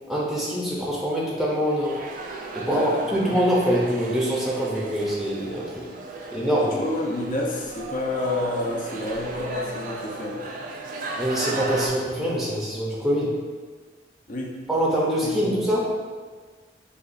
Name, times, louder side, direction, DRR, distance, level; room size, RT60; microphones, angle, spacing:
voice 1, 0.1-2.0 2.5-5.8 6.3-6.8 11.2-13.3 14.7-15.9, equal, ahead, -6 dB, 0.7 m, -24 dB
sound 1, 1.7-11.9, right 2 dB, 45° right, 0.4 m, -35 dB
voice 2, 2.7-3.4 6.6-10.4 14.3-14.5 15.2-15.7, left 1 dB, 45° left, -2 dB, 0.6 m, -29 dB
6.6 x 2.4 x 2.6 m, 1.5 s
head